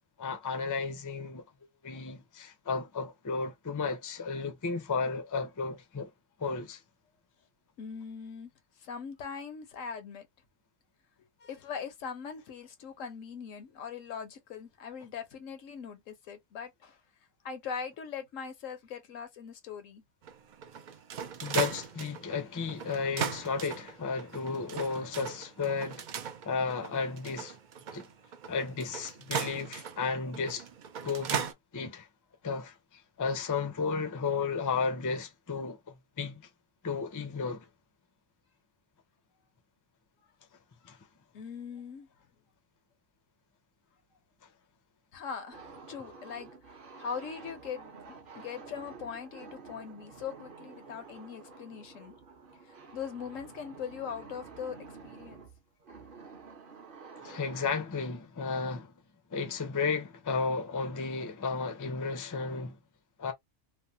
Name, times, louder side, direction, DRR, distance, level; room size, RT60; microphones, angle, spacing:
voice 1, 0.2-1.4 1.8-6.1 6.4-6.8 21.4-26.0 26.4-27.6 27.9-28.1 28.5-30.7 31.0-32.1 32.4-36.5 36.8-37.7 40.8-41.0 57.2-58.9 59.3-62.8 63.2-63.3, left 5 dB, 30° left, 0.3 m, -33 dB
voice 2, 7.8-8.5 8.8-10.2 11.4-17.0 17.4-20.0 41.3-42.1 45.1-46.5 47.0-47.9 48.3-52.1 52.7-55.4, left 6 dB, 85° left, 1.2 m, -41 dB
sound 1, 20.2-31.5, right 7 dB, 65° right, 0.4 m, -38 dB
sound 2, 45.5-57.7, right 4 dB, 50° right, 0.8 m, -50 dB
3.1 x 2.1 x 2.7 m
omnidirectional pair, 1.3 m